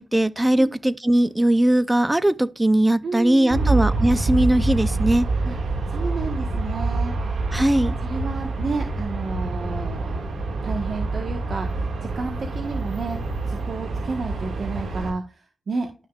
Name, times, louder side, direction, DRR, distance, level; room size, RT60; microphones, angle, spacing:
voice 1, 0.0-5.3 7.5-8.0, right 1 dB, 20° right, 0.7 m, -20 dB
voice 2, 3.0-3.7 5.4-5.6 5.9-7.4 8.0-10.3 10.6-13.2 13.5-16.1, right 4 dB, 65° right, 1.5 m, -31 dB
Aircraft, 3.5-15.1, right 3 dB, 85° right, 2.2 m, -26 dB
12.0 x 6.3 x 2.5 m
cardioid pair, 50°, 0 cm